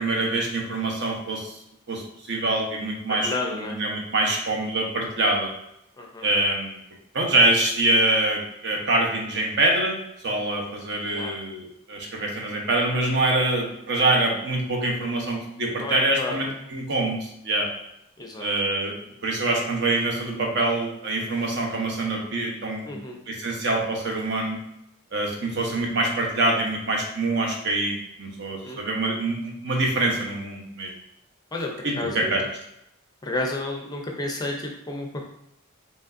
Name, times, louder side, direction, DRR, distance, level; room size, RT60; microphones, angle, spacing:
voice 1, 0.0-1.6 1.9-5.5 6.2-6.8 7.1-10.0 10.2-17.7 18.4-18.9 19.2-24.6 25.1-30.9 31.8-32.4, right 2 dB, 55° right, 0 dB, 0.9 m, -25 dB
voice 2, 3.1-3.8 6.0-6.3 11.1-11.3 15.8-16.4 18.2-18.5 22.8-23.2 28.6-28.8 31.5-32.5 33.2-35.2, left 2 dB, 20° left, 1 dB, 0.5 m, -31 dB
5.0 x 3.2 x 2.5 m, 0.81 s
head